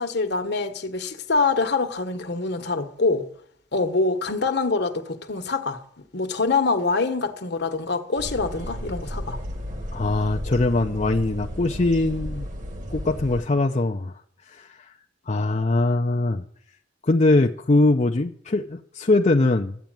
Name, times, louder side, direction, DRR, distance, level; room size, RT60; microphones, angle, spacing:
voice 1, 0.0-3.3 3.7-5.8 6.1-9.4, left 3 dB, 60° left, 1.3 m, -25 dB
sound 1, 8.2-13.4, equal, 40° right, 1.6 m, -33 dB
voice 2, 9.9-12.5 12.9-14.1 14.5-14.9 15.3-16.4 17.0-19.8, left 2 dB, 35° left, 0.6 m, -22 dB
13.5 x 8.4 x 9.0 m
head